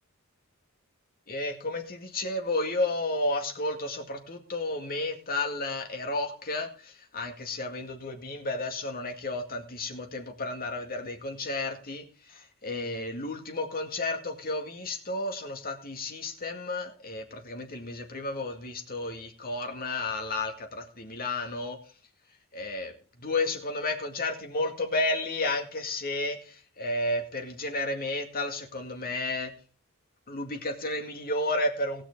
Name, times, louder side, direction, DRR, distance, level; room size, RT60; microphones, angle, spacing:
voice 1, 1.3-21.8 22.5-22.9 23.2-29.5 30.3-32.0, left 2 dB, 45° left, 4 dB, 2.1 m, -32 dB
18.5 x 6.3 x 4.6 m, 0.38 s
head